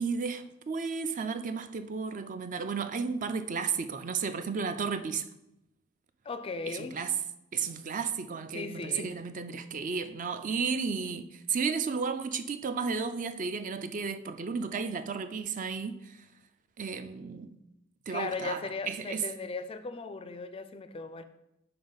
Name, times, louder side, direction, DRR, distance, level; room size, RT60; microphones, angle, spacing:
voice 1, 0.0-5.2 6.7-7.1 7.5-16.2 16.8-17.6 18.1-18.6 18.9-19.2, right 5 dB, 40° right, 0.4 m, -33 dB
voice 2, 6.2-7.1 8.5-9.1 18.1-21.2, left 3 dB, 25° left, 0.4 m, -37 dB
10.5 x 4.3 x 4.0 m
head